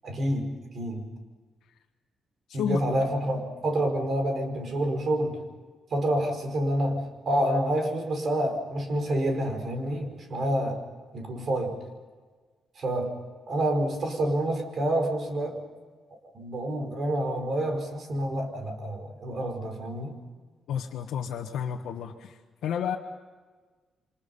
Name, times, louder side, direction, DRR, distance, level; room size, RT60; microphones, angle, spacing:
voice 1, 0.0-1.1 2.5-5.4 5.9-10.8 11.1-11.8 12.8-13.1 13.5-15.6 16.1-20.2, right 1 dB, 45° right, 5 dB, 4.9 m, -28 dB
voice 2, 20.7-23.0, left 8 dB, 85° left, 0 dB, 1.4 m, -31 dB
29.0 x 25.5 x 5.5 m, 1.4 s
cardioid pair, 140°, 0 cm